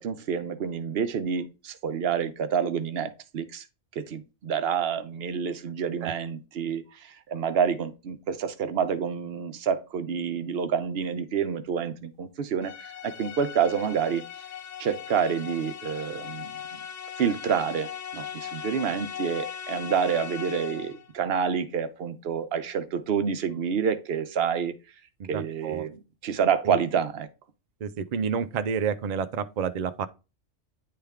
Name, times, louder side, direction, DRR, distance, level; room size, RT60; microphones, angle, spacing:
voice 1, 0.0-3.6 4.0-14.2 14.8-16.5 17.2-24.7 25.3-26.0 26.2-27.3, right 7 dB, 60° right, 0.8 m, -28 dB
sound 1, 12.6-21.1, left 8 dB, 75° left, 1.0 m, -39 dB
voice 2, 25.2-25.9 26.6-26.8 27.8-30.1, right 6 dB, 85° right, 0.3 m, -29 dB
9.5 x 3.3 x 3.5 m
omnidirectional pair, 1.3 m